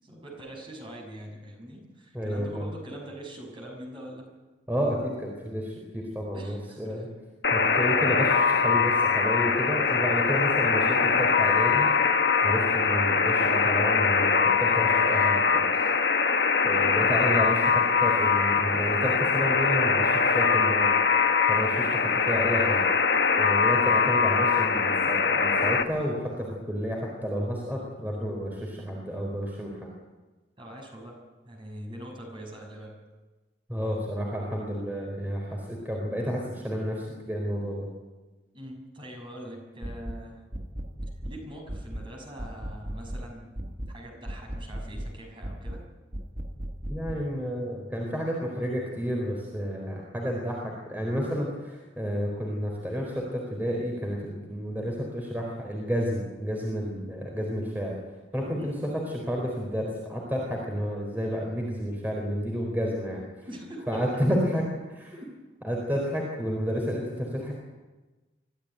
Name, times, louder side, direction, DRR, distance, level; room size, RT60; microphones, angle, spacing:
voice 1, 0.0-4.3 6.3-7.1 16.8-17.1 30.6-33.0 38.5-40.4 41.2-43.5 43.9-45.8 58.6-58.8 63.5-64.2 65.1-65.4, right 1 dB, 30° right, 1 dB, 6.0 m, -43 dB
voice 2, 2.1-2.7 4.7-7.1 7.5-11.9 12.4-15.8 16.6-20.9 21.5-22.8 23.3-29.9 33.7-37.9 46.9-57.9 58.3-63.2 63.9-64.6 64.9-65.1 65.6-67.5, equal, 10° right, -1 dB, 4.2 m, -31 dB
Alarm, 7.4-25.8, left 5 dB, 75° left, 1.4 m, -23 dB
sound 1, 39.8-40.2 40.5-41.4 41.7-42.1 42.4-43.3 43.6-44.0 44.3-45.1 45.4-45.8 46.1-47.2, right 1 dB, 50° right, 1.6 m, -36 dB
24.0 x 15.0 x 9.2 m, 1.2 s
head